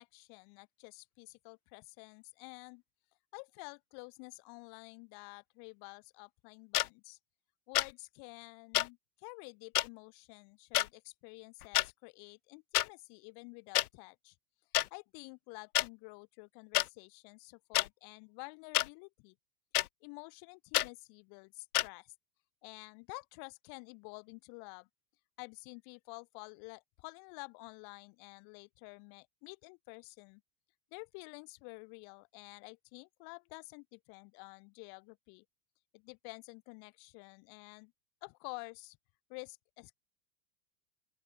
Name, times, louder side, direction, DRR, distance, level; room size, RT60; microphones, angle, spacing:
voice 1, 0.0-2.8 3.3-7.2 7.7-14.4 14.9-19.4 20.0-22.1 22.6-24.9 25.4-30.4 30.9-35.4 35.9-37.9 38.2-39.0 39.3-40.0, left 35 dB, 50° left, 7.4 m, -50 dB
sound 1, 6.7-6.9 7.7-7.9 8.7-8.9 9.7-9.9 10.7-10.9 11.6-11.9 12.7-12.9 13.7-13.9 14.7-14.9 15.7-15.9 16.7-16.9 17.7-17.9 18.7-18.9 19.7-19.9 20.7-20.9 21.7-21.9, left 15 dB, 70° left, 1.0 m, -28 dB
open air
hypercardioid pair, 90°, 48 cm